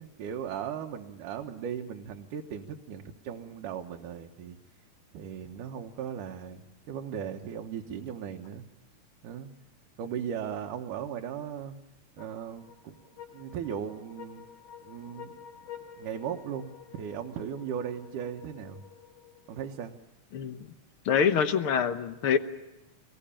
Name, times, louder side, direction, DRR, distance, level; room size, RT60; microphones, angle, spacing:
voice 1, 0.0-4.6 5.1-8.6 9.2-9.5 10.0-11.7 12.2-14.5 14.8-15.3 16.0-18.8 19.5-19.9, right 8 dB, 80° right, 3 dB, 2.7 m, -37 dB
sound 1, 12.2-19.7, left 9 dB, 85° left, 4.8 m, -50 dB
voice 2, 21.0-22.4, left 7 dB, 60° left, 9 dB, 1.6 m, -25 dB
25.5 x 21.0 x 8.8 m, 1.0 s
omnidirectional pair, 3.6 m